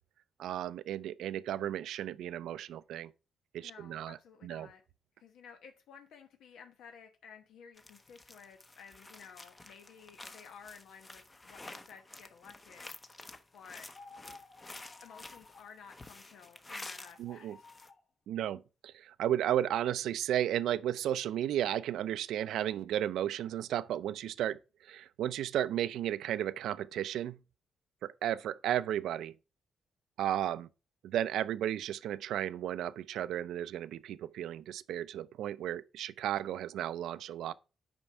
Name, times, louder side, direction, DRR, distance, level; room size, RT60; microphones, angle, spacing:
voice 1, 0.4-3.1 3.5-4.2 4.4-4.7 17.2-17.6 18.3-24.6 24.8-27.4 28.0-29.3 30.2-30.7 31.0-37.5, right 11 dB, 85° right, 0.4 m, -34 dB
voice 2, 3.6-4.8 5.2-12.9 13.5-13.9 15.0-17.6, left 6 dB, 85° left, 1.1 m, -54 dB
sound 1, 7.8-17.2 17.5-17.9, left 2 dB, 15° left, 0.7 m, -50 dB
sound 2, 13.9-15.7 17.0-18.0, left 4 dB, 40° left, 1.2 m, -55 dB
8.9 x 5.2 x 4.5 m
cardioid pair, 150°, 0 cm